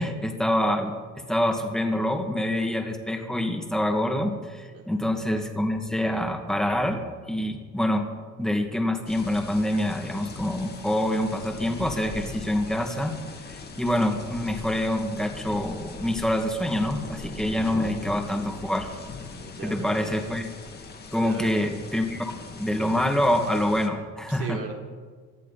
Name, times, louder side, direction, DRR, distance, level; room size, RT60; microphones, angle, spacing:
voice 1, 0.0-7.0 7.3-8.1 8.4-13.2 13.5-18.9 19.6-20.5 21.1-22.3 22.6-24.6, left 1 dB, ahead, 3 dB, 2.1 m, -26 dB
voice 2, 4.7-5.0 19.4-20.0 21.2-21.6 24.3-24.7, right 4 dB, 50° right, 0 dB, 3.9 m, -38 dB
sound 1, 9.1-23.9, left 4 dB, 35° left, 2.1 m, -40 dB
24.5 x 14.0 x 4.2 m, 1.5 s
cardioid pair, 125°, 30 cm